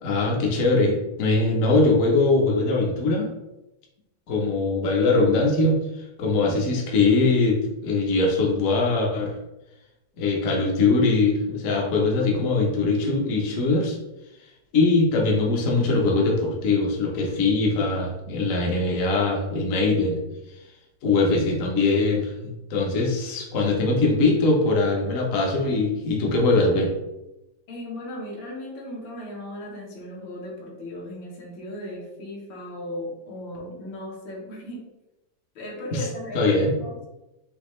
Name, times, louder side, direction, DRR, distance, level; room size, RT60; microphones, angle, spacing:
voice 1, 0.0-3.3 4.3-5.8 6.2-9.3 10.2-14.0 14.7-20.2 21.0-26.9 35.9-36.1 36.3-36.7, left 3 dB, 55° left, -1 dB, 1.0 m, -22 dB
voice 2, 27.7-34.8 35.6-37.1, left 1 dB, 75° left, -2 dB, 1.8 m, -36 dB
5.1 x 2.8 x 3.1 m, 0.96 s
omnidirectional pair, 2.1 m